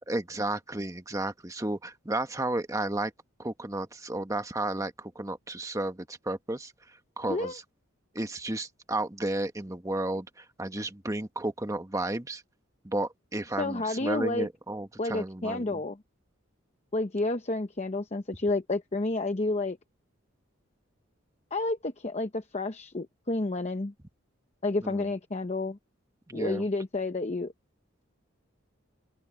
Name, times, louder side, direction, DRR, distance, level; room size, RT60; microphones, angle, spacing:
voice 1, 0.1-3.1 3.4-7.6 8.1-12.4 12.8-15.8 24.8-25.1 26.3-26.6, right 2 dB, 15° right, 1.3 m, -33 dB
voice 2, 13.6-14.5 15.0-16.0 16.9-19.8 21.5-23.9 24.6-25.8 26.3-27.5, left 2 dB, 35° left, 0.8 m, -30 dB
open air
head